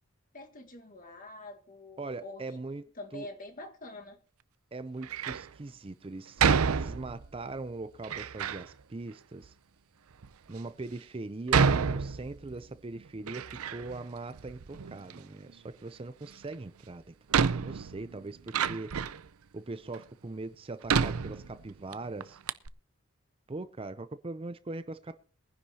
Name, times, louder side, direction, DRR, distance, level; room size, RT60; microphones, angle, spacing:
voice 1, 0.3-2.6 3.0-4.2, left 2 dB, 40° left, 1.6 m, -45 dB
voice 2, 2.0-2.8 3.1-3.3 4.7-9.5 10.5-18.9 19.5-22.4 23.5-25.2, right 2 dB, 25° right, 0.5 m, -41 dB
Door, 5.0-5.5 6.4-7.4 8.0-8.7 9.4-9.5 10.2-10.3 11.5-12.6 13.0-14.1 14.3-15.2 16.5-16.6 17.3-19.3 19.9-20.0 20.9-21.9 22.2-22.3 22.5-22.7, right 6 dB, 90° right, 0.6 m, -29 dB
22.5 x 10.0 x 2.8 m
head